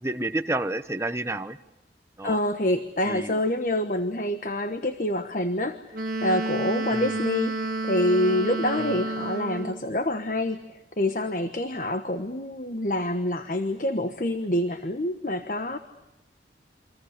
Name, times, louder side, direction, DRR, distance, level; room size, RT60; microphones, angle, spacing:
voice 1, 0.0-1.6 2.2-2.4 3.0-3.3 6.9-7.2 8.8-9.0, right 2 dB, 15° right, 9 dB, 0.9 m, -30 dB
voice 2, 2.2-5.8 6.2-10.6 11.0-15.8, left 1 dB, 45° left, 8 dB, 1.2 m, -26 dB
Wind instrument woodwind instrument, 5.9-9.9, right 3 dB, 50° right, 1.8 m, -30 dB
29.0 x 25.5 x 6.7 m, 0.94 s
head